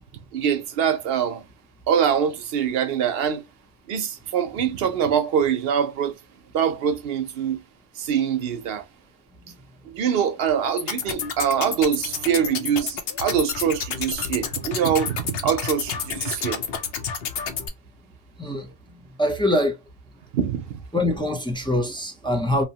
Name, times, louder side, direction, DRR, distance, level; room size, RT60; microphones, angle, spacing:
voice 1, 0.3-1.4 1.9-3.4 3.9-6.2 6.5-7.6 8.0-8.8 9.9-16.6 20.3-20.6, right 8 dB, 75° right, 0.8 m, -24 dB
sound 1, 10.8-17.7, left 6 dB, 75° left, 0.8 m, -30 dB
voice 2, 19.2-19.8 20.9-22.6, left 1 dB, 5° left, 0.4 m, -23 dB
2.8 x 2.0 x 2.7 m
omnidirectional pair, 1.0 m